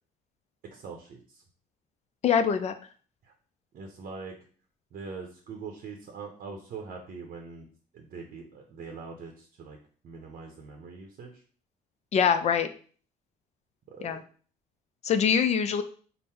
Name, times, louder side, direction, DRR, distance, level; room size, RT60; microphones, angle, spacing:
voice 1, 0.6-1.4 3.7-4.3 4.9-7.7 7.9-9.8 10.0-11.3 13.9-14.2, right 4 dB, 55° right, 3 dB, 0.7 m, -42 dB
voice 2, 2.2-2.7 12.1-12.7 14.0-14.2 15.0-15.8, left 7 dB, 40° left, 9 dB, 0.4 m, -23 dB
3.7 x 2.0 x 4.3 m, 0.43 s
cardioid pair, 110°, 17 cm